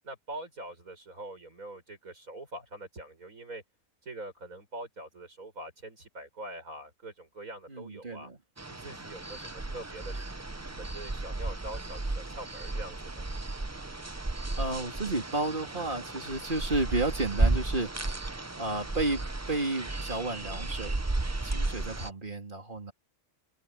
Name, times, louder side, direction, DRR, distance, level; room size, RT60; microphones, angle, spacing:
voice 1, 0.0-3.6 4.0-8.3 8.7-10.3 10.6-13.3, right 1 dB, 85° right, 7.6 m, -44 dB
voice 2, 7.7-8.4 14.6-17.9 18.6-21.0 21.4-22.9, right 2 dB, 35° right, 3.2 m, -32 dB
sound 1, 8.6-22.1, right 2 dB, 15° right, 0.6 m, -34 dB
open air
omnidirectional pair, 1.4 m